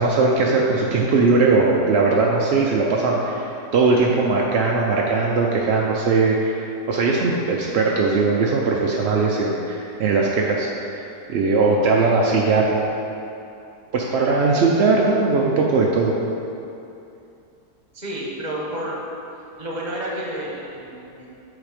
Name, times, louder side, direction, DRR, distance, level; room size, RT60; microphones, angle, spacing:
voice 1, 0.0-12.9 13.9-16.3, right 3 dB, 70° right, -2 dB, 0.6 m, -19 dB
voice 2, 17.9-19.0 19.6-21.3, right 1 dB, 30° right, -3 dB, 1.1 m, -30 dB
8.1 x 4.1 x 5.0 m, 2.8 s
omnidirectional pair, 1.7 m